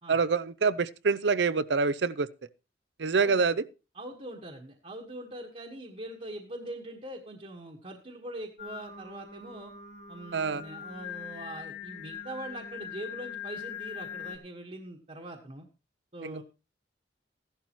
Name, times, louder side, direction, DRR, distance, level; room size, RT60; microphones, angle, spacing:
voice 1, 0.1-2.3 3.0-3.6 10.3-10.6 16.2-16.4, right 4 dB, 70° right, 0.6 m, -26 dB
voice 2, 3.2-3.6 3.9-9.7 10.1-15.7 16.1-16.4, right 1 dB, 40° right, 1.4 m, -42 dB
Singing, 8.6-14.4, left 8 dB, 45° left, 1.5 m, -42 dB
14.5 x 11.5 x 3.0 m
head